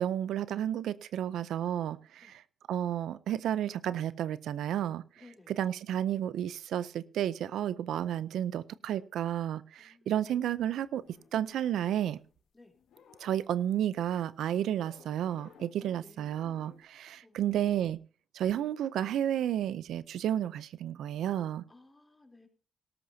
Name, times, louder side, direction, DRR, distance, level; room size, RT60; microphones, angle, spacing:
voice 1, 0.0-2.4 2.7-5.0 5.5-11.0 11.3-12.2 13.2-18.0 18.3-21.6, right 10 dB, 90° right, 17 dB, 0.5 m, -32 dB
voice 2, 5.2-5.6 9.8-10.2 12.5-12.7 15.8-16.4 17.2-17.7 21.7-22.5, left 2 dB, 15° left, 4 dB, 3.4 m, -58 dB
sound 1, 10.9-12.5 12.7-14.0 14.8-15.9 16.2-16.9, left 6 dB, 85° left, 2.0 m, -59 dB
18.0 x 12.5 x 2.8 m, 0.39 s
cardioid pair, 85°, 0 cm